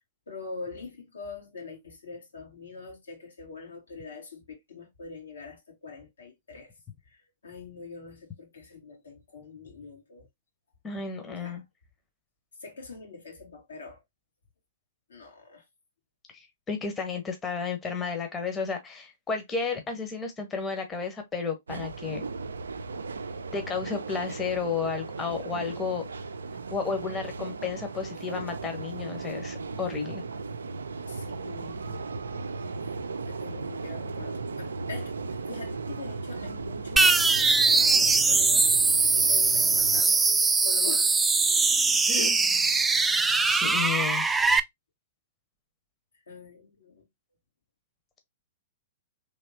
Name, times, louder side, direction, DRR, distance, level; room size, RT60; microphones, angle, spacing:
voice 1, 0.3-6.7 7.0-10.3 11.3-11.6 12.6-14.0 15.1-15.6 31.1-32.1 32.8-38.7 39.1-41.4 42.1-42.5 44.1-44.3 46.3-47.1, left 4 dB, 80° left, 1.8 m, -44 dB
voice 2, 10.8-11.6 16.3-22.2 23.5-26.1 26.7-30.2 42.1-42.3 43.4-44.3, left 5 dB, 20° left, 0.9 m, -32 dB
sound 1, 21.7-40.0, right 4 dB, 80° right, 0.4 m, -36 dB
sound 2, 37.0-44.6, right 4 dB, 10° right, 0.3 m, -22 dB
3.3 x 3.1 x 2.8 m
hypercardioid pair, 115°, 0 cm